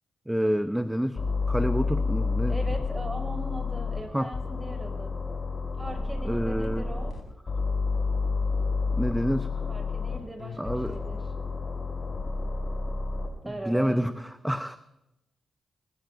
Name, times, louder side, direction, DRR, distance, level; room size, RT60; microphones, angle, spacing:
voice 1, 0.3-1.2 1.5-2.6 4.1-4.3 6.2-6.9 9.0-9.5 10.6-11.0 13.4-14.8, equal, 5° right, 11 dB, 0.8 m, -28 dB
sound 1, 1.2-4.0 4.3-7.1 7.5-10.2 10.7-13.3, left 4 dB, 40° left, 6.0 m, -29 dB
voice 2, 2.5-5.1 5.8-7.1 9.7-11.2 13.4-14.1, right 1 dB, 20° right, 4 dB, 5.5 m, -39 dB
sound 2, 6.6-7.2 10.4-11.6, left 5 dB, 60° left, 4.8 m, -45 dB
22.0 x 20.5 x 2.6 m, 0.90 s
supercardioid pair, 45°, 0 cm